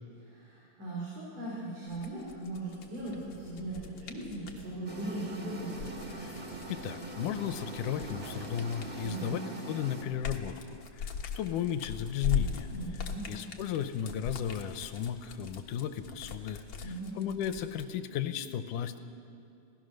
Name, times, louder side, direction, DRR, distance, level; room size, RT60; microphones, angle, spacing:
voice 1, 0.2-5.9 9.0-9.3 12.7-13.3 16.8-17.2, right 2 dB, 75° right, -6 dB, 6.0 m, -39 dB
sound 1, 1.9-4.7 5.6-9.4 9.8-17.9, left 6 dB, 50° left, 1.8 m, -39 dB
sound 2, 2.9-9.1, right 4 dB, 50° right, 2.8 m, -54 dB
sound 3, 4.9-10.0, right 2 dB, 20° right, 1.7 m, -42 dB
voice 2, 6.2-12.7 13.3-16.6 17.2-19.0, left 9 dB, 90° left, 10 dB, 2.4 m, -35 dB
27.0 x 17.5 x 6.5 m, 2.5 s
omnidirectional pair, 3.7 m